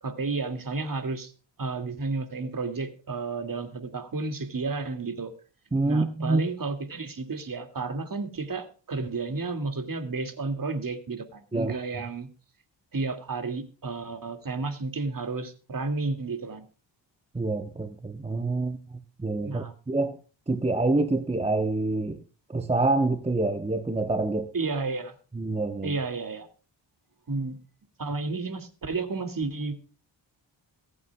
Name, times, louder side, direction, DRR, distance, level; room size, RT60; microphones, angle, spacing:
voice 1, 0.0-1.3 1.6-5.3 5.9-12.3 12.9-16.7 19.4-19.7 24.5-25.2 25.8-26.5 27.3-27.6 28.0-29.7, right 3 dB, 45° right, 2.4 m, -32 dB
voice 2, 5.7-6.4 11.5-11.7 17.3-20.2 20.5-22.2 22.5-24.5 25.4-26.0, right 2 dB, 15° right, 1.1 m, -27 dB
22.5 x 8.7 x 2.3 m
cardioid pair, 70°, 47 cm